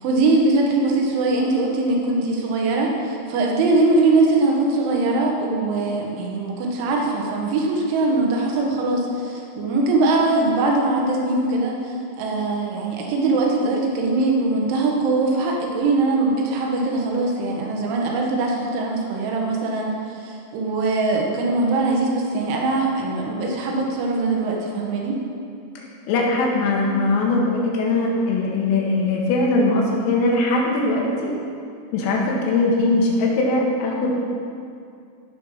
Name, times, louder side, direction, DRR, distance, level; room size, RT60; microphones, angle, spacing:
voice 1, 0.0-25.2, right 2 dB, 75° right, -1 dB, 3.7 m, -21 dB
voice 2, 25.8-31.3 31.9-34.2, left 2 dB, 85° left, -2 dB, 4.3 m, -21 dB
16.5 x 5.8 x 5.6 m, 2.4 s
omnidirectional pair, 5.8 m